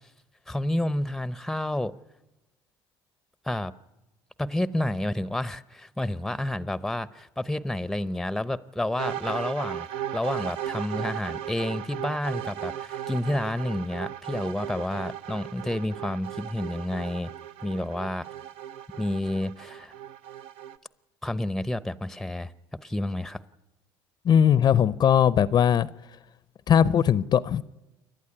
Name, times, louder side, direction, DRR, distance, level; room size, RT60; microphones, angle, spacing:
voice 1, 0.5-2.0 3.4-3.7 4.4-9.9 10.1-17.3 17.6-18.3 19.0-19.9 21.2-22.5 22.8-23.4, left 1 dB, 5° left, 0.7 m, -30 dB
sound 1, 9.0-20.8, right 11 dB, 75° right, 0.9 m, -36 dB
voice 2, 24.2-25.9 26.7-27.6, left 8 dB, 45° left, 0.6 m, -20 dB
28.0 x 11.5 x 9.8 m
supercardioid pair, 95°, 10 cm